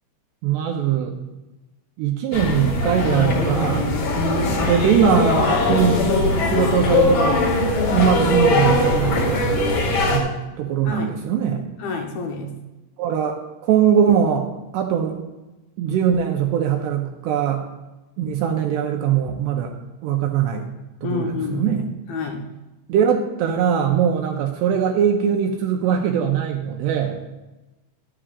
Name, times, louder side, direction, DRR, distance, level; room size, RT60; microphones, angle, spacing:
voice 1, 0.4-1.2 2.0-3.9 4.7-6.2 6.5-7.4 7.9-9.6 10.1-11.7 13.0-14.5 14.7-15.2 15.8-17.7 18.2-19.7 20.0-20.7 21.0-21.8 22.9-27.2, right 8 dB, 75° right, 2 dB, 2.6 m, -21 dB
sound 1, 2.3-10.2, left 2 dB, 50° left, 3.0 m, -20 dB
voice 2, 11.8-12.6 21.0-21.7 22.1-22.5, left 4 dB, 70° left, 2 dB, 2.3 m, -28 dB
14.5 x 11.5 x 2.5 m, 1.1 s
omnidirectional pair, 5.6 m